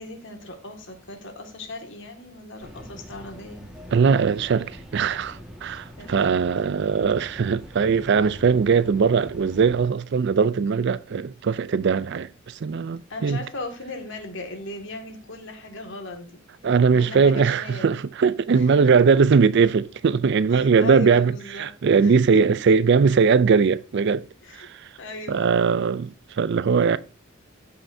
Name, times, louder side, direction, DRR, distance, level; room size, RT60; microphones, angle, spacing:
voice 1, 0.0-3.6 6.0-6.4 13.1-16.4 17.0-18.0 18.5-18.9 20.5-21.7 22.0-22.8 24.4-24.7 25.0-25.5, left 2 dB, 60° left, 2.0 m, -37 dB
sound 1, 2.6-9.8, equal, 5° right, 1.6 m, -43 dB
voice 2, 3.9-13.4 16.6-21.3 21.6-24.2 24.5-24.9 25.3-27.0, right 5 dB, 55° right, 0.4 m, -20 dB
14.0 x 5.7 x 2.7 m
head